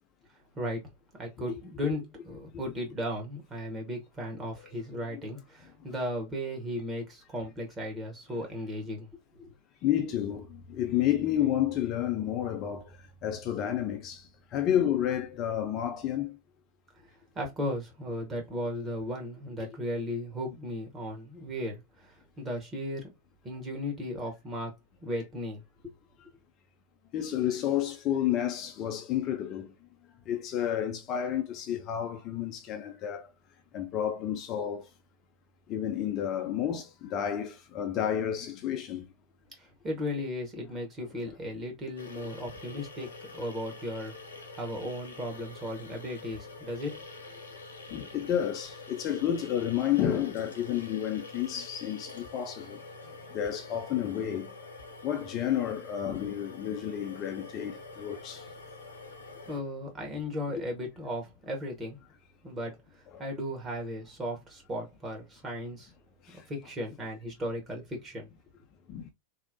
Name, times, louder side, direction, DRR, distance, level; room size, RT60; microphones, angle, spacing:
voice 1, 1.2-9.1 9.4-9.5 17.3-23.1 23.4-24.7 25.0-25.6 39.6-43.1 43.3-44.1 44.6-47.0 59.5-62.0 62.4-62.7 63.2-65.9 66.3-68.3, left 1 dB, 20° right, 1.3 m, -36 dB
voice 2, 9.8-12.9 13.2-16.4 27.1-29.7 30.3-33.3 33.7-34.9 35.7-39.1 41.3-41.4 47.9-52.8 53.3-54.5 55.0-58.5 60.6-60.7 63.1-63.2 66.3-66.4 68.9-69.1, left 10 dB, 35° left, 0.4 m, -30 dB
sound 1, 42.0-59.6, left 3 dB, 70° left, 0.7 m, -46 dB
3.0 x 2.1 x 2.6 m
figure-of-eight pair, 90°, 0 cm